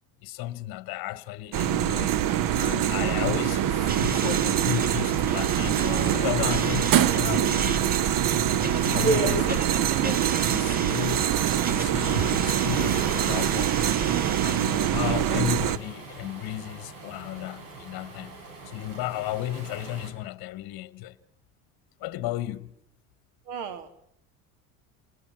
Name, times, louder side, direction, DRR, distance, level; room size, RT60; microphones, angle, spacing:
voice 1, 0.2-2.2 2.6-7.9 8.5-11.2 11.7-14.0 14.4-18.4 18.6-21.2 22.0-22.7, left 15 dB, 55° left, 1.1 m, -34 dB
sound 1, 1.5-15.8, right 11 dB, 50° right, 0.9 m, -24 dB
Waves surf, 3.3-20.1, right 3 dB, 85° right, 5.6 m, -40 dB
sound 2, 3.9-15.5, right 4 dB, 20° right, 1.0 m, -36 dB
voice 2, 9.0-9.4 12.1-12.2 23.5-23.9, right 3 dB, 65° right, 2.3 m, -26 dB
27.5 x 19.5 x 5.9 m
hypercardioid pair, 85°, 44 cm